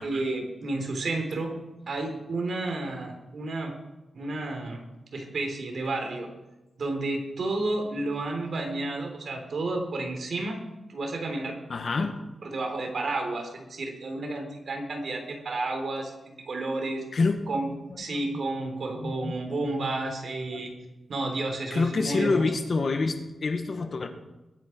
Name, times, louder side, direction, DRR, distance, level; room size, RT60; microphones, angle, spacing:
voice 1, 0.0-1.6 1.9-3.7 4.1-4.8 5.1-6.3 6.8-10.6 10.9-11.6 12.4-17.0 17.5-17.7 18.0-20.7 21.1-22.5, right 2 dB, 60° right, 2 dB, 3.7 m, -31 dB
voice 2, 11.7-12.1 17.1-17.6 18.1-18.4 19.0-19.4 20.5-20.6 21.7-24.1, left 3 dB, 50° left, 6 dB, 1.8 m, -27 dB
21.5 x 9.2 x 4.7 m, 1.0 s
wide cardioid pair, 90°, 0 cm